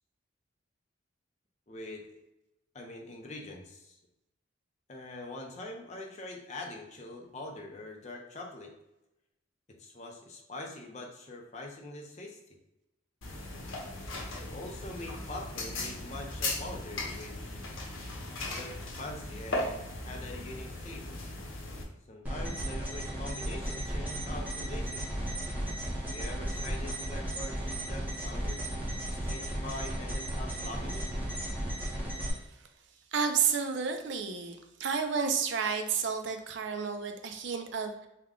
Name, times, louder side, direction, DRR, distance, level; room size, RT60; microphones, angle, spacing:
voice 1, 1.7-2.1 2.7-4.0 4.9-8.7 9.8-12.4 14.3-17.6 18.4-21.2 22.1-25.1 25.9-28.7 29.1-31.1, left 2 dB, 35° left, 1 dB, 0.5 m, -43 dB
sound 1, 13.2-21.8, left 2 dB, 75° left, 0.9 m, -38 dB
sound 2, 22.2-32.3, right 1 dB, 10° right, 0.7 m, -35 dB
voice 2, 33.1-38.1, right 6 dB, 60° right, 6 dB, 0.4 m, -31 dB
3.5 x 2.2 x 3.6 m, 0.91 s
head